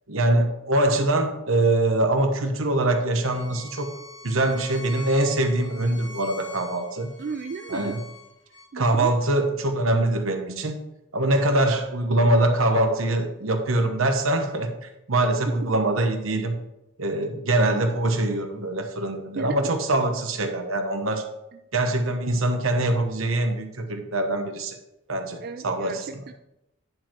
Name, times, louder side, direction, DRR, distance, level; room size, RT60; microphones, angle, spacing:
voice 1, 0.1-3.9 4.2-7.1 7.7-8.0 8.7-10.8 11.1-14.7 15.1-16.6 17.0-21.2 21.7-24.7 25.1-26.3, right 1 dB, 75° right, 5 dB, 1.2 m, -23 dB
Bowed string instrument, 3.3-8.7, left 2 dB, 60° left, 1.4 m, -43 dB
voice 2, 7.2-7.9 8.7-9.1 15.5-15.6 19.4-19.7 25.4-26.3, right 5 dB, 45° right, 7 dB, 0.3 m, -34 dB
10.0 x 4.6 x 4.5 m, 0.87 s
head